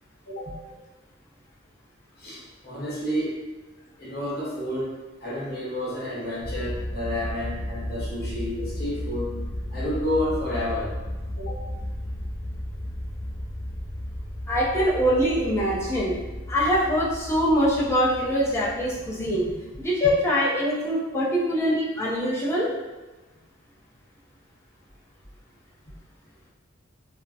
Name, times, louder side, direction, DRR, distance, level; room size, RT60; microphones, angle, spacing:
voice 1, 2.2-3.4 4.0-4.9 5.2-9.3 9.7-10.9 11.4-11.6 20.0-20.1, left 1 dB, 50° left, -8 dB, 1.0 m, -30 dB
sound 1, 6.4-19.6, left 1 dB, 5° right, 0.9 m, -34 dB
voice 2, 14.5-16.1 16.5-19.5 19.8-22.7, equal, 15° left, -7 dB, 0.5 m, -23 dB
2.4 x 2.0 x 2.6 m, 1.2 s
head